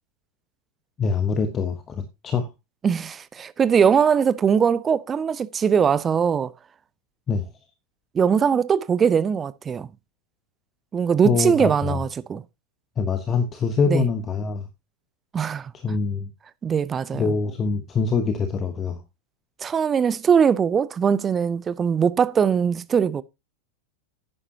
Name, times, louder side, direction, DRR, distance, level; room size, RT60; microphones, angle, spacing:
voice 1, 1.0-2.5 7.3-7.5 11.2-12.0 13.0-14.7 15.7-16.3 17.1-19.0, left 5 dB, 25° left, 1.2 m, -24 dB
voice 2, 2.8-6.5 8.1-9.9 10.9-12.4 13.9-14.1 15.3-15.7 16.6-17.3 19.6-23.2, right 7 dB, 20° right, 0.6 m, -21 dB
11.0 x 9.9 x 2.8 m
figure-of-eight pair, 90°, 0 cm